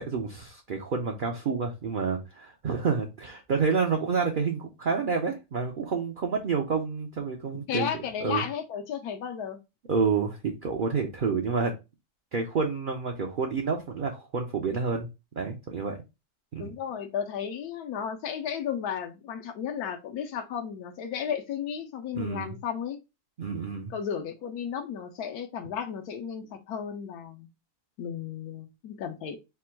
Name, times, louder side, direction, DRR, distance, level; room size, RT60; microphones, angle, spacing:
voice 1, 0.0-7.9 8.2-8.4 9.9-11.7 12.3-15.1 15.4-16.0 16.5-16.7 22.1-22.6 23.4-23.9, right 5 dB, 60° right, 0.5 m, -29 dB
voice 2, 7.7-9.6 16.6-23.0 23.9-27.5 28.0-29.4, left 8 dB, 85° left, 1.1 m, -34 dB
3.5 x 2.2 x 4.3 m
omnidirectional pair, 1.6 m